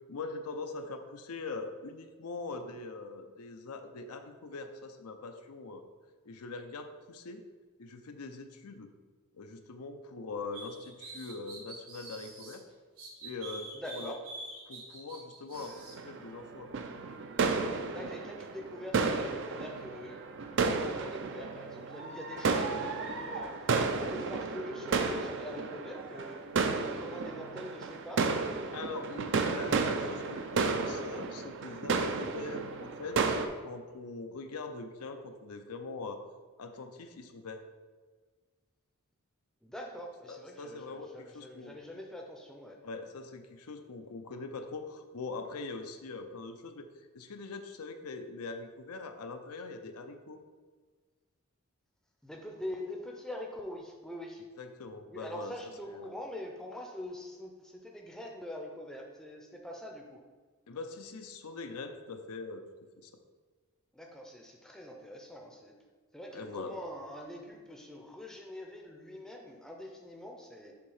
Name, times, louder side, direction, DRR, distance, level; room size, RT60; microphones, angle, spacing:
voice 1, 0.1-5.8 6.2-7.4 7.8-8.9 9.3-12.6 13.2-14.1 14.7-16.7 28.7-33.2 33.6-36.2 36.6-37.6 40.3-41.8 42.8-46.9 47.1-50.4 54.6-55.5 55.9-56.1 60.7-62.6 63.0-63.1 66.3-66.8, left 3 dB, 85° left, 6 dB, 0.6 m, -42 dB
sound 1, 10.5-12.6 13.0-16.0, right 2 dB, 75° right, 1.8 m, -46 dB
voice 2, 13.7-14.2 17.9-20.2 20.5-26.4 26.8-28.3 39.6-42.8 52.2-54.4 55.1-60.2 63.9-65.7 66.1-70.7, left 1 dB, ahead, 1 dB, 0.5 m, -44 dB
sound 2, 15.5-33.5, right 4 dB, 55° right, 0.4 m, -33 dB
7.0 x 2.8 x 4.8 m, 1.4 s
head